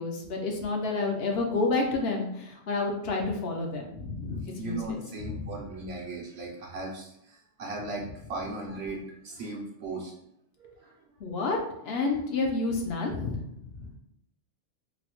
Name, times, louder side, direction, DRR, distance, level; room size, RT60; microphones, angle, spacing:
voice 1, 0.0-5.5 11.2-13.9, left 3 dB, 65° left, 1 dB, 0.8 m, -30 dB
voice 2, 4.6-10.1 10.6-10.9, right 2 dB, 65° right, -1 dB, 0.8 m, -37 dB
3.9 x 2.1 x 2.9 m, 0.76 s
omnidirectional pair, 1.2 m